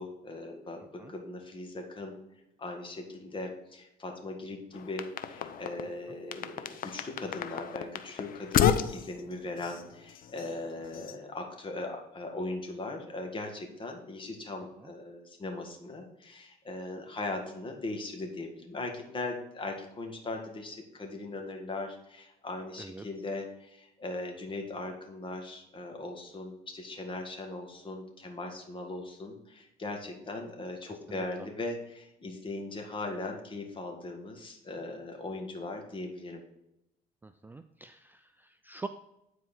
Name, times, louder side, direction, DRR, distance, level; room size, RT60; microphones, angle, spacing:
voice 1, 0.0-2.2 2.6-36.4, left 2 dB, 30° left, 3 dB, 1.8 m, -39 dB
sound 1, 4.7-5.9 6.3-11.2, left 9 dB, 55° left, 0.7 m, -32 dB
voice 2, 37.2-38.9, right 3 dB, 10° right, 9 dB, 0.4 m, -44 dB
9.5 x 4.6 x 4.4 m, 0.86 s
cardioid pair, 110°, 17 cm